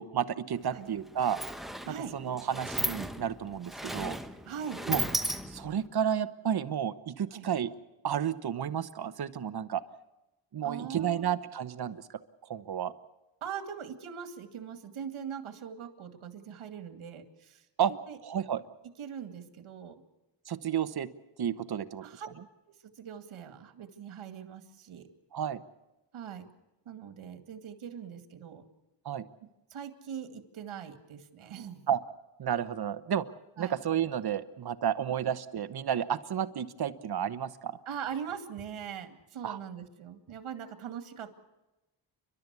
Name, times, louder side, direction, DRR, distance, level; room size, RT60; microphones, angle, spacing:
voice 1, 0.0-1.4 2.1-4.2 4.9-5.0 5.5-7.7 8.0-9.8 10.5-12.0 12.5-12.9 17.8-17.9 18.2-18.6 20.5-21.1 21.4-22.0 25.3-25.6 29.0-29.2 31.9-32.0 32.4-33.2 33.6-37.8 39.4-39.6, right 9 dB, 50° right, 13 dB, 1.1 m, -31 dB
Sliding door, 0.5-0.7 0.9-5.9, equal, ahead, 1.0 m, -36 dB
voice 2, 1.9-2.2 4.5-4.8 7.3-7.5 10.6-11.4 13.4-18.2 19.0-20.0 22.0-22.3 23.0-25.1 26.1-26.5 26.9-28.6 29.7-31.8 33.6-33.8 37.9-41.3, right 8 dB, 75° right, 8 dB, 2.3 m, -41 dB
30.0 x 12.5 x 8.2 m, 0.99 s
cardioid pair, 120°, 49 cm